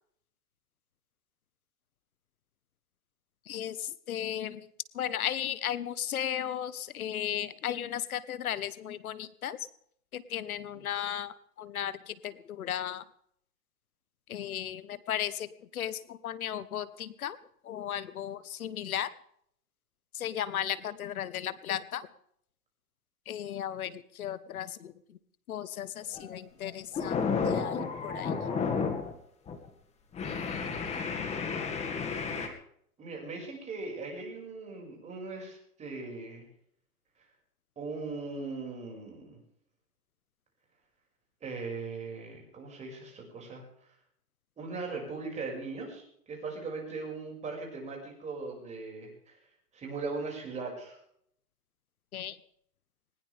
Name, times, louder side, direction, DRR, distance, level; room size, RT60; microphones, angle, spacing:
voice 1, 3.5-4.7 4.9-9.7 10.1-13.0 14.3-17.4 17.6-19.1 20.1-22.1 23.3-24.9 25.5-28.3 30.2-30.8 52.1-52.4, left 10 dB, 60° left, 16 dB, 1.3 m, -35 dB
sound 1, 26.0-26.3 26.7-29.1 29.5-29.7 30.1-32.5, left 5 dB, 15° left, 2.0 m, -32 dB
voice 2, 33.0-36.5 37.8-39.4 41.4-43.6 44.6-49.1 49.7-51.0, right 3 dB, 15° right, 0 dB, 6.0 m, -39 dB
20.0 x 20.0 x 3.5 m, 0.68 s
hypercardioid pair, 140°, 48 cm